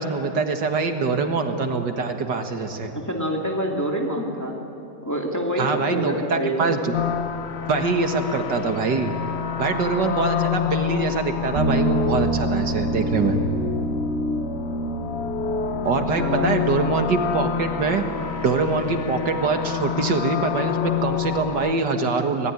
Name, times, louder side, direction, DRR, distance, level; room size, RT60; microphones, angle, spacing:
voice 1, 0.0-2.9 5.6-6.9 7.7-9.1 9.6-13.4 15.8-18.0 18.4-22.5, right 4 dB, 75° right, 5 dB, 2.2 m, -24 dB
voice 2, 2.9-4.6 5.0-6.8 15.8-16.6, equal, 10° left, 0 dB, 2.4 m, -27 dB
sound 1, 6.9-21.7, left 7 dB, 50° left, 0.9 m, -28 dB
sound 2, 11.5-21.0, right 2 dB, 55° right, 3.5 m, -29 dB
25.5 x 19.0 x 9.9 m, 2.8 s
omnidirectional pair, 1.9 m